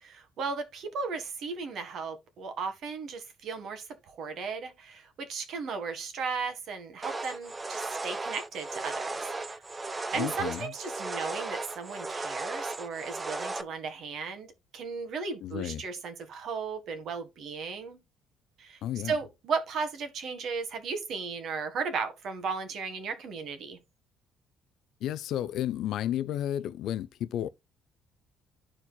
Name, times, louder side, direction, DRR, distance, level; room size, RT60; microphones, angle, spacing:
voice 1, 0.0-9.6 10.1-18.0 18.6-18.8 19.0-23.8, right 5 dB, 50° right, 1.6 m, -35 dB
sound 1, 7.0-13.6, right 3 dB, 15° right, 0.4 m, -36 dB
voice 2, 10.1-10.7 15.4-15.8 18.8-19.2 25.0-27.5, left 11 dB, 60° left, 0.5 m, -32 dB
12.5 x 4.5 x 2.2 m
cardioid pair, 165°, 0 cm